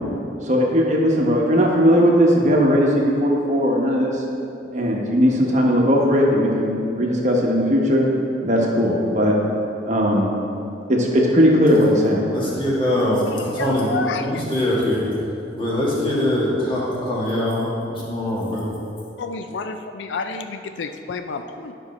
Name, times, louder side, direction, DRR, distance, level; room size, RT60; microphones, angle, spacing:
voice 1, 0.4-4.2 4.7-8.1 8.4-9.4 9.9-10.3 10.9-12.3, equal, 40° right, -1 dB, 1.0 m, -18 dB
voice 2, 12.3-15.0 15.5-18.7, left 1 dB, 30° left, -6 dB, 1.8 m, -23 dB
voice 3, 13.3-14.4 19.2-21.7, left 4 dB, 90° left, 8 dB, 0.4 m, -30 dB
10.5 x 5.4 x 4.2 m, 2.8 s
head